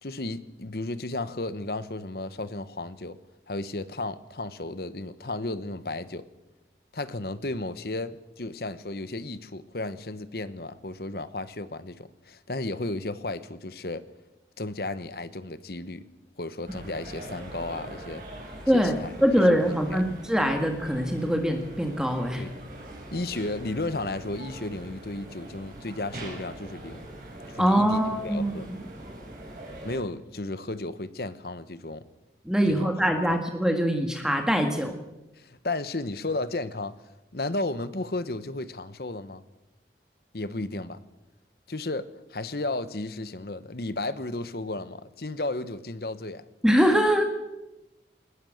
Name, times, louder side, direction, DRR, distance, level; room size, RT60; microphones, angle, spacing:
voice 1, 0.0-3.2 3.5-6.2 6.9-14.0 14.6-16.1 16.4-18.2 18.7-19.1 19.7-20.0 22.4-22.6 23.1-27.1 27.5-28.7 29.8-32.0 32.8-33.4 35.4-36.9 37.3-39.4 40.3-41.0 41.7-46.4, left 2 dB, 60° left, 13 dB, 1.1 m, -34 dB
sound 1, 16.7-30.0, right 1 dB, 50° right, 6.5 m, -42 dB
voice 2, 18.7-22.5 27.6-28.6 32.5-35.0 46.6-47.2, equal, 5° right, 4 dB, 1.9 m, -23 dB
20.5 x 19.5 x 6.6 m, 0.98 s
head